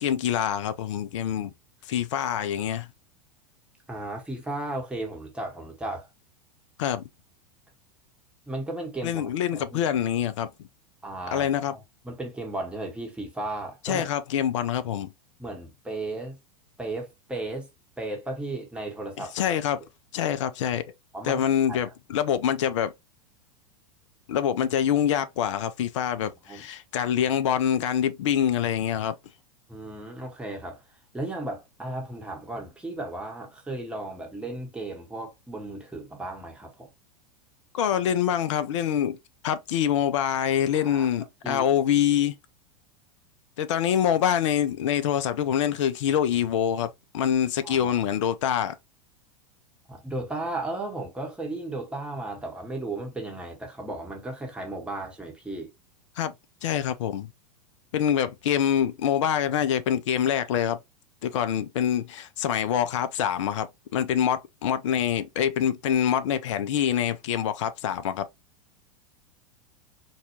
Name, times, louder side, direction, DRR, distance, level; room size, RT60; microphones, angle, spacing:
voice 1, 0.0-1.5 1.9-2.9 6.8-7.0 9.0-10.5 11.3-11.7 13.8-15.1 19.2-19.8 20.1-20.8 21.2-22.9 24.3-29.1 37.7-39.2 39.4-42.4 43.6-48.8 56.2-56.3 56.6-57.3 57.9-60.8 61.2-68.3, left 9 dB, 55° left, 0.4 m, -25 dB
voice 2, 3.9-6.1 8.5-9.9 11.0-11.8 12.0-14.1 15.4-16.4 16.8-17.7 18.0-19.3 21.1-21.8 26.0-26.1 26.5-26.6 29.7-30.8 31.1-36.9 40.7-41.1 41.4-41.6 47.6-47.9 49.9-55.7, right 2 dB, 5° right, 0.9 m, -35 dB
4.1 x 2.3 x 2.8 m
figure-of-eight pair, 90°, 19 cm